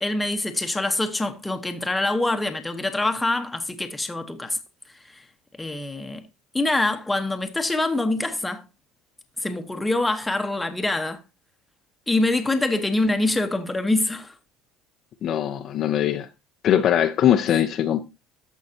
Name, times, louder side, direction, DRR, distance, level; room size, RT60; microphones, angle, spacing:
voice 1, 0.0-4.6 5.1-5.2 5.6-6.2 6.5-8.6 9.4-11.2 12.1-14.3, left 2 dB, 5° left, 1.1 m, -25 dB
voice 2, 15.2-16.3 16.6-18.0, left 10 dB, 40° left, 0.7 m, -21 dB
14.0 x 5.6 x 2.8 m
cardioid pair, 155°, 0 cm